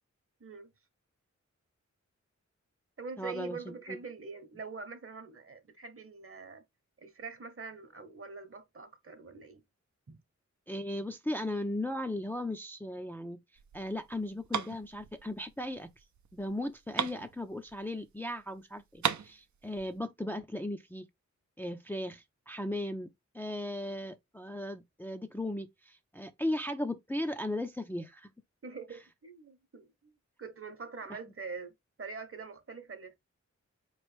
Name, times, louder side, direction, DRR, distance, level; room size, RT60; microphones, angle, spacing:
voice 1, 0.4-0.7 3.0-6.6 7.0-9.6 10.1-10.2 28.6-30.1 30.4-33.1, right 4 dB, 50° right, 0.9 m, -44 dB
voice 2, 3.2-4.0 10.7-13.4 13.7-15.9 16.3-21.1 21.6-23.1 23.3-28.3, left 1 dB, 5° left, 0.4 m, -37 dB
sound 1, 13.6-18.1 18.4-18.5 18.7-20.0, right 8 dB, 75° right, 0.5 m, -37 dB
4.3 x 3.1 x 3.1 m
wide cardioid pair, 65°, 29 cm